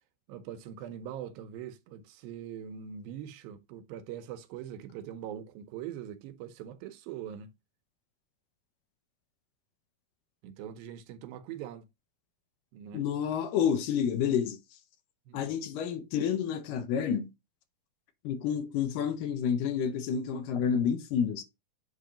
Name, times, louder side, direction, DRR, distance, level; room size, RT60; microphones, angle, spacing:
voice 1, 0.3-7.5 10.4-11.9 12.7-13.1 15.3-15.5, right 10 dB, 85° right, 2.6 m, -42 dB
voice 2, 12.9-14.6 15.3-17.3 18.2-21.4, left 8 dB, 75° left, 2.3 m, -29 dB
8.1 x 2.8 x 5.0 m
omnidirectional pair, 4.1 m